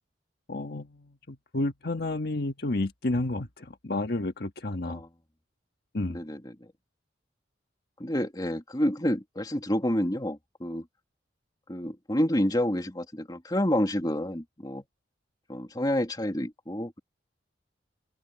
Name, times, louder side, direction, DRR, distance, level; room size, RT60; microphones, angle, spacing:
voice 1, 0.5-5.0 5.9-6.2, left 2 dB, 60° left, 1.5 m, -31 dB
voice 2, 6.1-6.7 8.0-10.9 11.7-14.8 15.5-17.0, left 1 dB, 20° left, 2.1 m, -29 dB
head